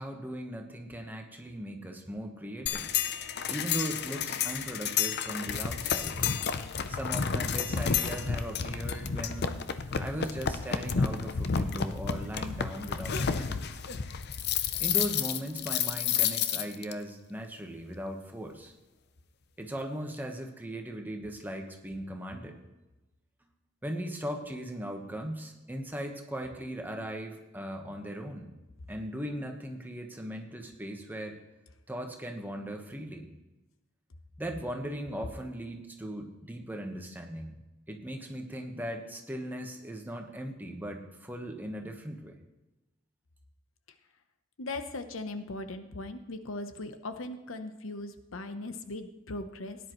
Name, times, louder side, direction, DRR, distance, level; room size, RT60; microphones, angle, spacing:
voice 1, 0.0-2.9 3.5-6.2 6.9-9.5 10.0-13.6 14.8-18.7 19.6-22.6 23.8-28.5 28.9-31.4 31.9-33.3 34.4-37.6 37.9-42.3, equal, 10° right, 3 dB, 1.2 m, -38 dB
sound 1, 2.7-16.9, left 7 dB, 55° left, 0.6 m, -31 dB
voice 2, 44.6-49.8, left 2 dB, 75° left, 9 dB, 0.9 m, -39 dB
17.0 x 10.0 x 3.1 m, 1.0 s
head